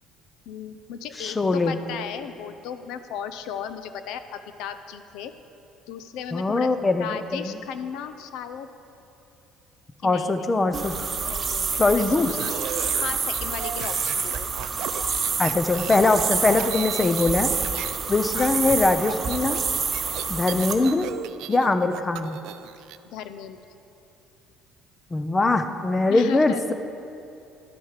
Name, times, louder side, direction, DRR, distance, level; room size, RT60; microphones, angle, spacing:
voice 1, 0.5-5.3 5.9-8.7 10.0-10.5 11.3-12.0 13.0-14.5 18.3-18.5 23.1-23.6 26.1-26.6, left 8 dB, 75° left, 10 dB, 0.6 m, -36 dB
voice 2, 1.2-1.8 6.3-7.6 10.0-10.9 11.8-12.3 15.4-17.5 18.1-19.6 20.3-21.1 21.5-22.4 25.1-26.7, left 3 dB, 15° left, 9 dB, 0.5 m, -22 dB
sound 1, 10.7-20.7, right 5 dB, 25° right, 1.0 m, -28 dB
sound 2, 12.1-18.0 18.3-23.0, right 12 dB, 70° right, 0.3 m, -37 dB
12.0 x 9.1 x 4.8 m, 2.8 s
cardioid pair, 150°, 0 cm